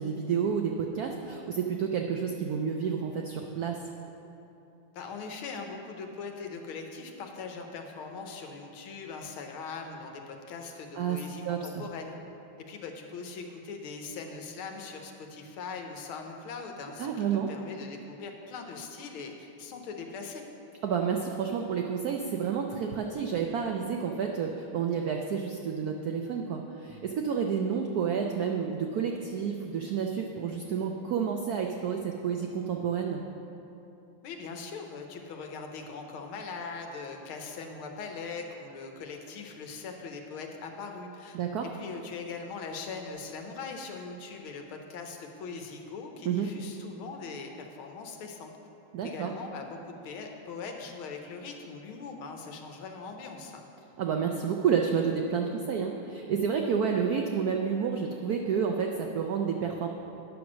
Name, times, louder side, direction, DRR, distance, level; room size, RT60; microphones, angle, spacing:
voice 1, 0.0-3.8 11.0-11.2 11.4-11.8 17.0-17.5 20.8-33.2 41.3-41.7 46.2-46.5 48.9-49.3 54.0-59.9, right 7 dB, 85° right, 2 dB, 0.8 m, -30 dB
voice 2, 4.9-12.1 12.6-20.4 34.2-48.5 49.0-53.7, left 4 dB, 80° left, 3 dB, 1.7 m, -41 dB
9.3 x 6.2 x 6.2 m, 3.0 s
omnidirectional pair, 2.3 m